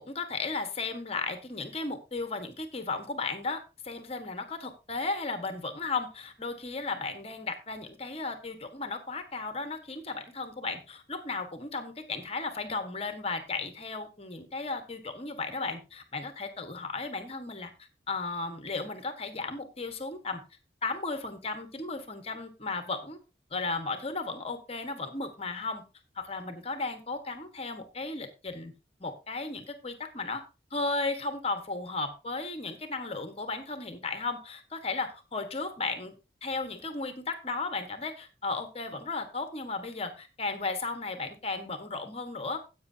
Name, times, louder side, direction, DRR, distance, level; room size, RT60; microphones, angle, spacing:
voice 1, 0.0-17.7 18.1-20.4 20.8-23.2 23.5-25.8 26.1-28.7 29.0-30.4 30.7-36.1 36.4-42.6, left 3 dB, 35° left, 7 dB, 1.4 m, -35 dB
15.5 x 8.5 x 2.8 m, 0.28 s
head